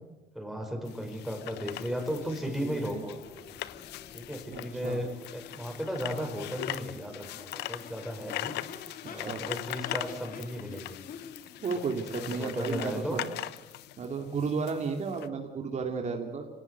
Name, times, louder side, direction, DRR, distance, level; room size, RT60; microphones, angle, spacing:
voice 1, 0.3-3.6 4.1-8.6 9.1-11.0 11.9-13.2, equal, ahead, 3 dB, 5.1 m, -35 dB
sound 1, 0.9-15.3, left 15 dB, 80° left, 1.0 m, -41 dB
Crowd / Race car auto racing / Accelerating revving vroom, 1.2-15.0, left 6 dB, 55° left, 3.1 m, -49 dB
voice 2, 2.6-3.0 4.5-5.0 9.0-9.4 11.6-13.3 14.0-16.5, right 5 dB, 45° right, 3 dB, 2.5 m, -33 dB
25.5 x 18.0 x 8.1 m, 1.0 s
cardioid pair, 110°, 17 cm